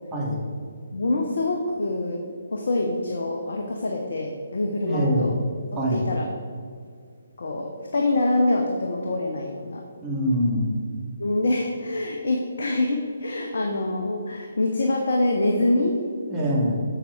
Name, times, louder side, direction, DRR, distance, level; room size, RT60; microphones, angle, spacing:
voice 1, 0.1-0.5 4.8-5.3 5.7-6.1 10.0-10.7 16.3-16.8, equal, 15° right, -5 dB, 2.0 m, -24 dB
voice 2, 0.9-5.3 5.7-6.2 7.4-9.8 11.2-15.9, left 2 dB, 60° left, 1 dB, 1.0 m, -25 dB
7.2 x 7.0 x 5.1 m, 2.1 s
figure-of-eight pair, 140°, 0 cm